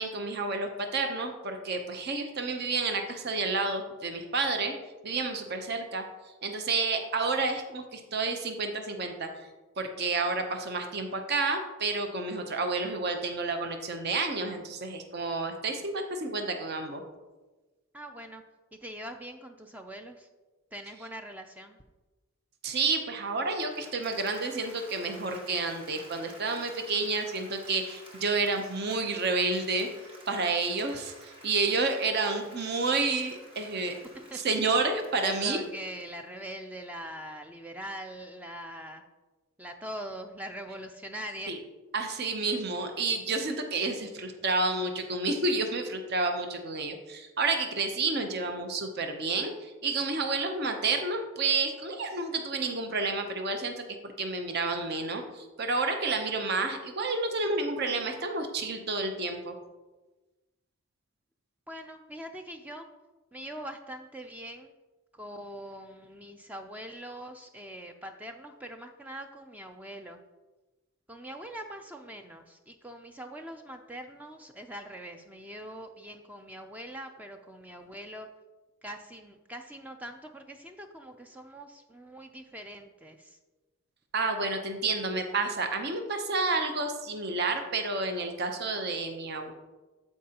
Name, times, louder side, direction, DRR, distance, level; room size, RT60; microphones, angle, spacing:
voice 1, 0.0-4.8 5.0-6.0 6.4-9.3 9.8-17.0 22.6-29.9 30.3-33.9 34.3-35.6 41.5-41.6 41.9-59.6 84.1-89.5, right 3 dB, 50° right, 5 dB, 0.7 m, -30 dB
voice 2, 17.9-18.4 18.7-20.3 20.7-21.8 34.1-34.6 35.2-39.0 39.6-41.6 61.7-62.9 63.3-64.7 65.1-70.2 71.1-78.3 78.8-83.4, right 1 dB, 5° right, 5 dB, 0.3 m, -42 dB
Applause, 23.4-36.5, right 1 dB, 25° right, 1.2 m, -52 dB
12.5 x 4.6 x 2.9 m, 1.2 s
head